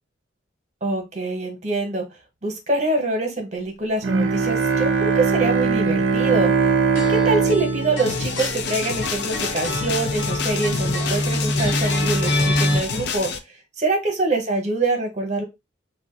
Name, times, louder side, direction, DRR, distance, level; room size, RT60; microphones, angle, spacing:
voice 1, 0.8-2.0 2.4-6.5 7.1-13.3 13.8-15.4, right 2 dB, 35° right, 3 dB, 0.9 m, -24 dB
Bowed string instrument, 4.0-9.3, right 5 dB, 90° right, 0.5 m, -21 dB
sound 1, 7.0-12.8, left 1 dB, 80° left, 1.0 m, -25 dB
sound 2, 8.1-13.4, left 6 dB, 60° left, 0.4 m, -28 dB
2.4 x 2.2 x 3.6 m, 0.23 s
head